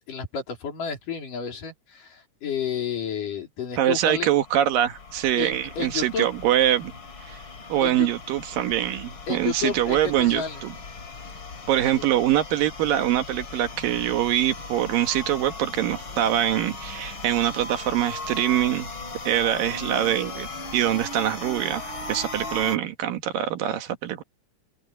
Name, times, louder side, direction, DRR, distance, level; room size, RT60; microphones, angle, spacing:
voice 1, 0.1-4.3 5.4-6.3 7.8-8.1 9.3-10.6 12.0-12.1, left 7 dB, 70° left, 5.3 m, -31 dB
voice 2, 3.8-6.9 7.3-7.4 7.7-10.7 11.7-18.9 19.3-24.2, right 12 dB, 80° right, 3.1 m, -24 dB
sound 1, 4.0-22.8, left 3 dB, 40° left, 3.1 m, -38 dB
open air
omnidirectional pair, 3.9 m